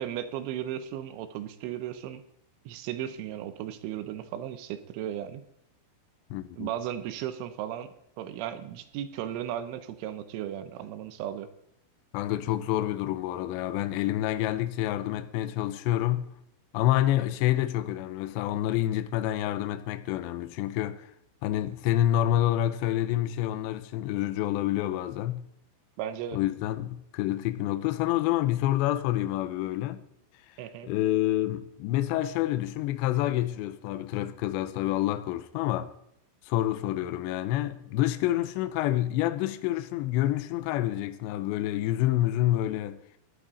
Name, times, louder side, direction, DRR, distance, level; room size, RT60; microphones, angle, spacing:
voice 1, 0.0-2.2 2.7-5.4 6.6-11.5 26.0-26.4 30.6-30.9, right 11 dB, 80° right, 3.2 m, -35 dB
voice 2, 6.3-6.7 12.1-16.3 16.7-21.1 21.4-25.5 26.3-30.0 30.8-35.9 36.5-43.0, left 14 dB, 90° left, 2.6 m, -28 dB
16.0 x 11.5 x 4.1 m
omnidirectional pair, 5.9 m